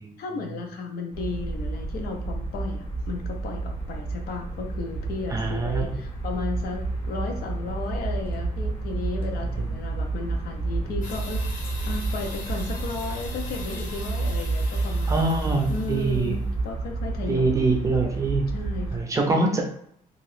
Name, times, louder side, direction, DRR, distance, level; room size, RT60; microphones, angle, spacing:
voice 1, 0.2-15.4 15.7-17.9 18.5-19.6, left 4 dB, 90° left, 2 dB, 0.7 m, -34 dB
sound 1, 1.1-19.0, right 3 dB, 15° left, 0.8 m, -30 dB
voice 2, 5.3-5.9 15.1-16.3 17.3-18.5 18.9-19.6, right 3 dB, 20° right, 3 dB, 0.5 m, -24 dB
sound 2, 11.0-16.4, left 3 dB, 60° left, 0.9 m, -41 dB
2.9 x 2.4 x 3.2 m, 0.68 s
cardioid pair, 175°, 16 cm